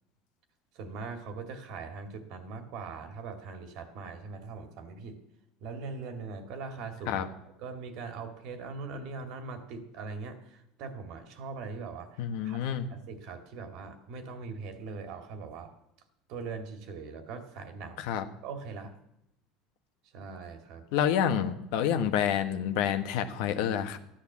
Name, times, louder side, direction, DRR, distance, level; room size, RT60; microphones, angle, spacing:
voice 1, 0.7-5.2 5.6-7.3 7.6-15.7 16.3-18.1 18.4-19.0 20.1-20.8, right 4 dB, 65° right, 7 dB, 2.1 m, -41 dB
voice 2, 12.2-12.9 18.0-18.3 20.9-24.0, left 9 dB, 75° left, 8 dB, 1.3 m, -28 dB
13.5 x 10.5 x 7.2 m, 0.82 s
supercardioid pair, 105°, 0 cm